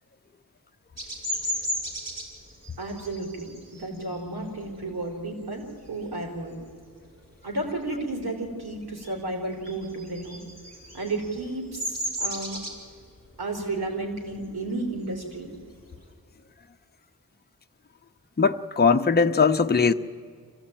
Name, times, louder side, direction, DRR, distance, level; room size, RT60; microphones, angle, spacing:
Bird vocalization bird call bird song, 1.0-6.2 6.6-6.9 7.2-8.5 8.7-16.1, equal, 45° right, 4.9 m, -35 dB
voice 1, 2.8-6.6 7.4-10.4 10.9-12.6 13.4-15.5, right 2 dB, 90° right, 4.4 m, -32 dB
voice 2, 18.4-19.9, left 5 dB, 25° left, 0.7 m, -20 dB
25.5 x 15.5 x 8.9 m
wide cardioid pair, 85°, 37 cm